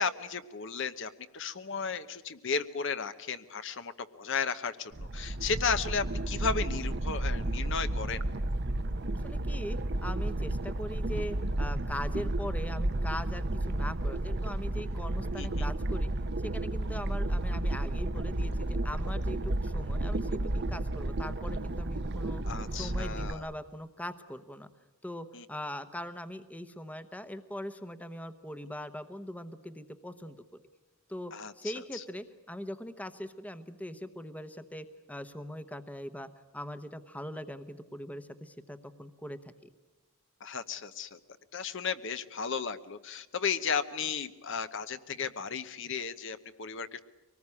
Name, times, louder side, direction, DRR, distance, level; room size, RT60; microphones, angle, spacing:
voice 1, 0.0-8.2 15.4-15.7 22.5-23.5 25.3-25.4 31.3-32.0 40.4-41.2 41.5-47.0, left 5 dB, 60° left, 11 dB, 0.9 m, -34 dB
sound 1, 4.9-23.3, right 1 dB, 50° right, 0.8 m, -32 dB
voice 2, 9.2-16.1 16.4-22.4 22.8-24.7 25.0-30.4 31.1-39.5, equal, 5° left, 11 dB, 0.9 m, -41 dB
24.0 x 19.5 x 9.8 m, 1.1 s
head